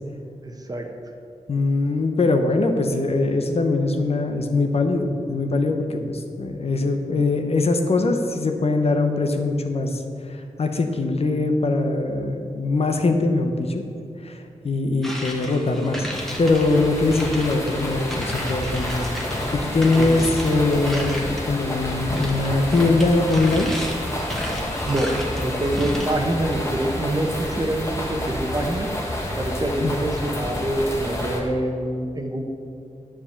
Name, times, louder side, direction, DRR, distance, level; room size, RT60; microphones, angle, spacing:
voice 1, 0.4-0.9 20.0-20.1 24.8-28.9 29.4-32.4, right 1 dB, 30° right, 3 dB, 1.0 m, -25 dB
voice 2, 1.5-10.0 10.3-13.8 14.2-16.1 16.4-19.2 19.5-23.7 29.8-30.0, left 3 dB, 50° left, 5 dB, 0.9 m, -22 dB
sound 1, 15.0-21.5 21.9-26.1, equal, 5° left, 1.5 m, -33 dB
sound 2, 16.1-31.4, left 1 dB, 20° left, 1.7 m, -29 dB
10.5 x 5.1 x 8.4 m, 2.5 s
wide cardioid pair, 145°, 13 cm